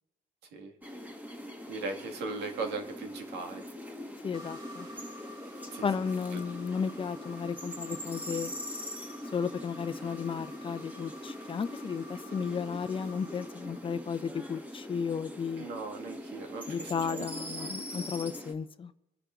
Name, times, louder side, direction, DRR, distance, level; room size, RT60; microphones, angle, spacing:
sound 1, 0.8-18.5, equal, 10° right, 1.5 m, -42 dB
voice 1, 1.7-3.7 5.7-5.9 6.3-6.4 15.6-17.3, right 3 dB, 85° right, 3 dB, 1.9 m, -38 dB
voice 2, 4.2-4.9 5.8-8.5 9.3-15.7 16.7-18.9, left 6 dB, 30° left, 11 dB, 0.6 m, -34 dB
sound 2, 4.3-14.3, left 1 dB, 30° right, 3.6 m, -51 dB
26.5 x 10.0 x 2.5 m, 0.92 s
cardioid pair, 110°, 17 cm